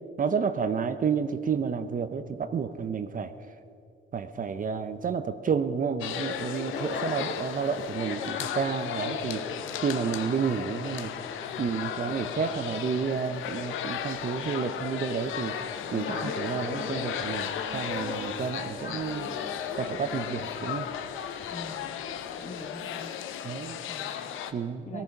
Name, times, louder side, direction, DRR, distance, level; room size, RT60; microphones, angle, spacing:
voice 1, 0.2-3.3 4.1-9.5 9.8-11.1 11.6-15.6 15.9-19.4 19.8-20.9 23.4-23.8 24.5-25.0, right 6 dB, 45° right, 10 dB, 0.8 m, -30 dB
sound 1, 6.0-24.5, left 9 dB, 85° left, 0.9 m, -35 dB
sound 2, 6.1-22.7, left 3 dB, 60° left, 2.4 m, -41 dB
voice 2, 21.5-22.0 22.4-23.1 23.9-24.4 24.9-25.0, left 2 dB, 35° left, 3 dB, 2.2 m, -44 dB
18.0 x 14.0 x 5.4 m, 2.5 s
cardioid pair, 90°, 20 cm